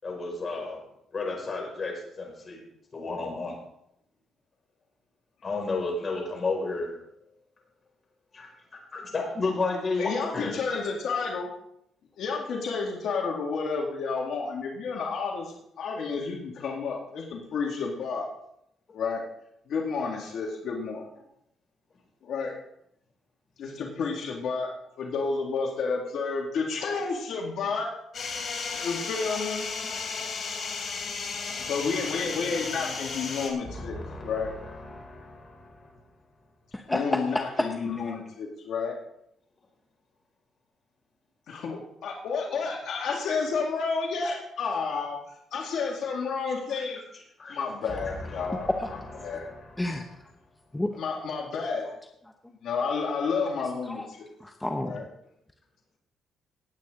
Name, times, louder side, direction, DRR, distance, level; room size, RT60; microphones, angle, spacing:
voice 1, 0.0-0.8 1.1-2.6 2.9-3.6 5.4-6.9 8.3-8.5 8.9-10.5 33.6-35.9 46.8-46.9 47.4-47.6 48.0-50.1, left 3 dB, 40° left, 0 dB, 5.5 m, -33 dB
voice 2, 10.0-11.5 12.2-18.3 18.9-19.2 19.7-21.0 22.2-22.5 23.6-24.7 25.0-27.9 28.7-29.7 31.6-34.0 34.2-34.5 36.9-39.0 41.5-47.0 47.5-49.5 51.0-52.0 52.6-54.3 54.8-55.1, left 5 dB, 70° left, 0 dB, 2.2 m, -31 dB
sound 1, 28.1-33.5, left 5 dB, 55° left, 3.3 m, -34 dB
voice 3, 36.7-37.7 38.0-38.1 49.8-50.1 50.7-50.9 54.0-54.1 54.4-55.0, left 1 dB, 10° left, 5 dB, 1.0 m, -29 dB
18.5 x 8.7 x 3.8 m, 0.77 s
cardioid pair, 90°, 0 cm